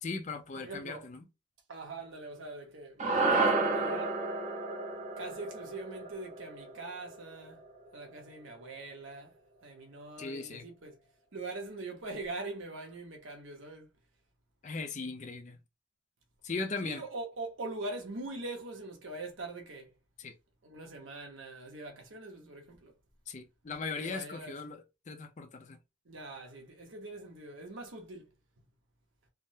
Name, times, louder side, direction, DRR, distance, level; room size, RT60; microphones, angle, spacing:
voice 1, 0.0-1.3 10.2-10.7 14.6-15.6 16.4-17.0 20.2-20.3 23.3-25.8, left 4 dB, 40° left, 0.4 m, -38 dB
voice 2, 0.6-1.0 1.7-4.2 5.2-7.6 7.9-9.3 9.6-10.9 11.3-13.9 16.8-19.9 20.6-22.9 23.8-24.5 26.1-28.3, right 2 dB, 85° right, 0.9 m, -43 dB
sound 1, 3.0-7.5, right 3 dB, 35° right, 0.6 m, -31 dB
3.5 x 2.0 x 2.6 m
head